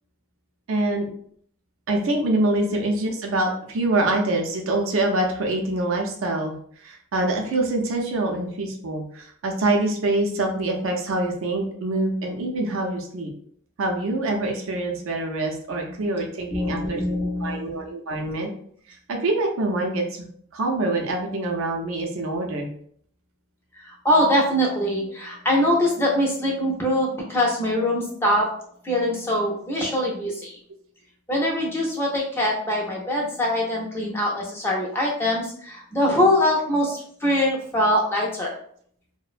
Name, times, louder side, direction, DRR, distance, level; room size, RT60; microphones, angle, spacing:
voice 1, 0.7-1.1 1.9-6.6 6.8-13.3 13.8-17.0 17.4-18.5 19.1-22.7, right 2 dB, 70° right, 2 dB, 0.4 m, -25 dB
voice 2, 15.9-16.2 16.5-17.9 23.8-28.5 28.8-30.5 31.3-38.6, left 1 dB, 10° left, -3 dB, 0.5 m, -23 dB
2.5 x 2.1 x 2.4 m, 0.62 s
head